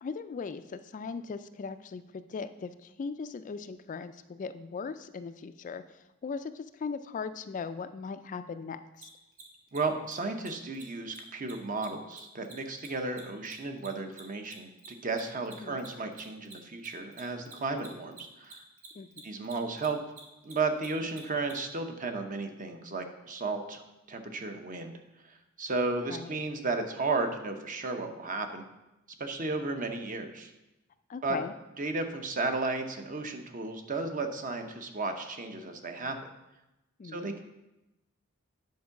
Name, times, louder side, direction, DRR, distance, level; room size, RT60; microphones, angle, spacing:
voice 1, 0.0-9.1 15.6-15.8 19.0-19.2 26.1-26.4 31.1-31.5 37.0-37.3, left 5 dB, 40° left, 11 dB, 0.3 m, -39 dB
Mechanisms, 9.0-9.1 9.3-9.4 9.7-9.8 10.0-10.1 10.4-10.5 10.7-10.8 11.1-11.2 11.5-14.2 14.5-21.5, right 4 dB, 80° right, 1.8 m, -49 dB
voice 2, 9.7-18.6 19.2-20.0 20.4-23.8 24.1-25.0 25.2-28.6 29.2-30.5 31.2-31.4 31.8-36.2 37.1-37.4, right 3 dB, 40° right, 5 dB, 0.9 m, -34 dB
9.4 x 4.6 x 5.8 m, 0.96 s
head